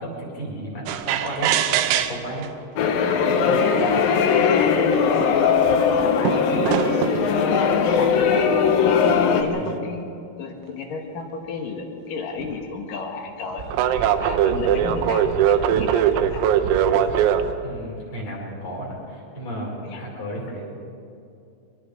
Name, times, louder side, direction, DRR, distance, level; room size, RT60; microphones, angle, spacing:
voice 1, 0.0-2.5 3.4-3.7 6.5-6.6 7.9-8.2 9.5-9.9 14.7-15.1 17.6-20.7, equal, 30° left, -3 dB, 5.7 m, -34 dB
sound 1, 0.9-2.5 3.4-3.5 4.2-4.3 4.6-5.5 6.3-7.3 8.2-9.8 12.4-12.6 13.6-17.5, right 9 dB, 85° right, 3.7 m, -22 dB
sound 2, 2.8-9.4, left 6 dB, 85° left, 2.0 m, -19 dB
voice 2, 3.6-4.1 4.5-5.1 5.8-8.2 8.8-9.0 9.4-10.1 10.4-13.7 14.2-16.4 19.8-20.0, left 4 dB, 55° left, 3 dB, 2.6 m, -34 dB
23.5 x 22.0 x 5.1 m, 2.5 s
omnidirectional pair, 6.0 m